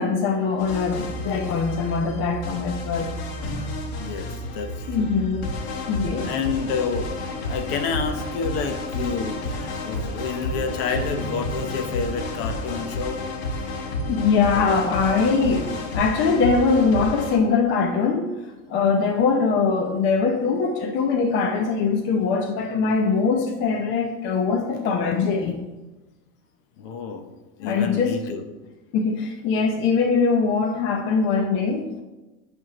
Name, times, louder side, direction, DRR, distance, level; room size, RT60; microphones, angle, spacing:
voice 1, 0.0-3.1 4.9-5.5 5.9-6.3 14.1-18.3 18.7-25.6 27.6-28.2 28.9-32.0, left 5 dB, 40° left, 3 dB, 0.7 m, -22 dB
sound 1, 0.6-17.4, left 1 dB, 80° left, 1.7 m, -31 dB
voice 2, 4.0-5.1 6.2-13.2 26.8-27.3 27.6-28.5, left 5 dB, 60° left, 6 dB, 1.0 m, -29 dB
sound 2, 10.9-12.9, right 2 dB, 30° right, 1.1 m, -38 dB
9.2 x 3.6 x 5.9 m, 1.1 s
cardioid pair, 165°, 30 cm